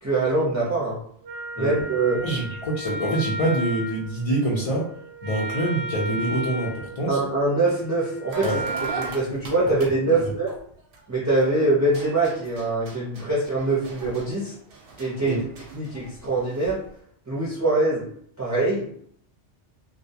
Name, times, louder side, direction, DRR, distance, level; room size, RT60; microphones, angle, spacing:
voice 1, 0.0-1.0 1.6-2.2 7.1-8.5 9.0-10.5 11.1-14.5 15.0-15.4 15.7-16.8 17.3-18.0 18.4-18.9, right 2 dB, 25° right, -7 dB, 0.4 m, -23 dB
Wind instrument woodwind instrument, 1.2-9.2, right 2 dB, 85° right, 0.9 m, -34 dB
voice 2, 2.2-4.9 5.2-7.2 8.4-8.6 15.2-15.4, right 1 dB, 55° left, -3 dB, 0.3 m, -25 dB
sound 1, 8.3-11.4 11.8-16.9, right 4 dB, 60° right, 0.7 m, -40 dB
2.2 x 2.2 x 2.7 m, 0.63 s
omnidirectional pair, 1.2 m